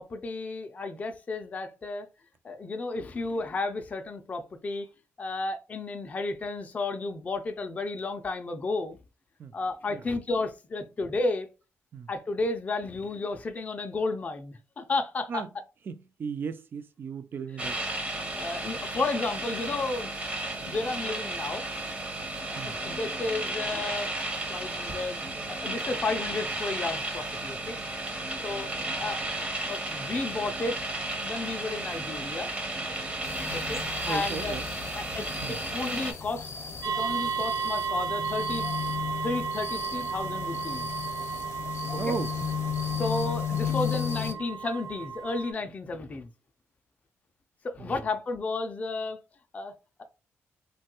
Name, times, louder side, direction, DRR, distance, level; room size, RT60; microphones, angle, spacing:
voice 1, 0.0-2.1 2.4-4.9 5.2-9.0 9.5-11.5 12.1-15.4 18.3-21.7 22.5-24.1 24.5-25.2 25.5-27.8 28.4-29.3 29.7-30.8 31.2-32.5 33.5-33.8 34.1-34.6 34.9-36.5 37.0-38.7 39.2-40.9 41.9-42.1 43.0-46.3 47.6-49.2 49.5-50.0, left 3 dB, 30° left, 0.4 m, -32 dB
voice 2, 15.9-17.8 22.6-22.8 34.1-34.6 35.4-35.6 42.0-42.3 47.8-48.1, right 6 dB, 45° right, 0.3 m, -36 dB
sound 1, 17.6-36.1, right 2 dB, 25° right, 0.7 m, -34 dB
sound 2, 33.2-44.3, left 8 dB, 60° left, 0.7 m, -35 dB
sound 3, 36.8-45.5, right 6 dB, 85° right, 0.6 m, -34 dB
3.1 x 2.2 x 2.8 m
cardioid pair, 115°, 5 cm